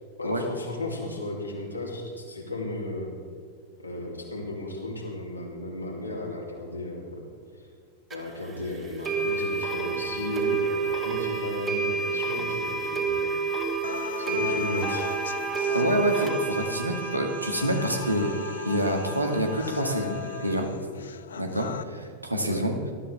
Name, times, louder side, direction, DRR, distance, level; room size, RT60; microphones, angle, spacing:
voice 1, 0.2-3.1 3.8-7.1 7.6-7.7 8.1-13.2 14.2-15.1 22.4-22.7, left 2 dB, 85° left, -2 dB, 3.2 m, -34 dB
sound 1, 8.1-8.2 9.1-20.6, right 5 dB, 20° right, 2.2 m, -30 dB
sound 2, 13.8-21.8, left 7 dB, 65° left, 0.6 m, -38 dB
voice 2, 15.7-18.3 18.7-20.7 21.4-22.8, right 1 dB, 85° right, 3 dB, 1.8 m, -27 dB
19.0 x 13.0 x 3.5 m, 2.1 s
figure-of-eight pair, 90°, 0 cm